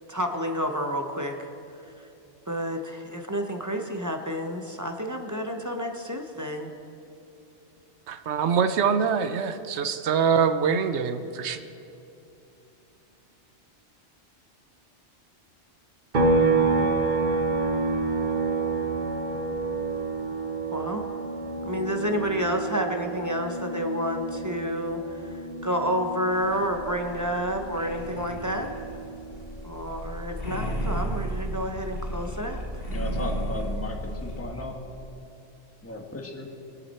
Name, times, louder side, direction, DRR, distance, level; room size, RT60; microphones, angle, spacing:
voice 1, 0.1-1.5 2.5-6.7 20.7-21.0 21.7-25.4 25.6-28.7 29.6-32.6, equal, 20° right, 4 dB, 0.8 m, -30 dB
voice 2, 8.1-11.6, right 6 dB, 75° right, 10 dB, 1.0 m, -24 dB
sound 1, 16.1-29.7 30.0-32.2, right 3 dB, 45° right, 1.1 m, -29 dB
sound 2, 26.3-34.4, right 1 dB, 55° left, 1.7 m, -34 dB
voice 3, 32.9-34.8 35.8-36.5, left 2 dB, 10° left, 1 dB, 1.3 m, -35 dB
23.0 x 8.2 x 4.3 m, 2.8 s
omnidirectional pair, 1.2 m